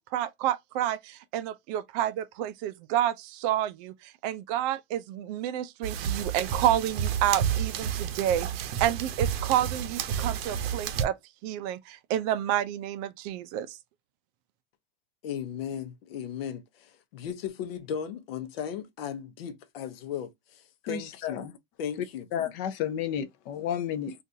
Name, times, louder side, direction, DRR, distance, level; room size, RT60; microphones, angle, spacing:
voice 1, 0.0-11.2 11.4-13.8, right 12 dB, 40° right, 0.4 m, -29 dB
sound 1, 5.8-11.0, right 8 dB, 75° right, 0.7 m, -30 dB
voice 2, 15.2-21.4 21.8-22.3, left 8 dB, 70° left, 0.9 m, -36 dB
voice 3, 20.8-21.5 22.3-24.1, left 9 dB, 40° left, 0.5 m, -31 dB
3.8 x 2.5 x 2.7 m
supercardioid pair, 150°, 31 cm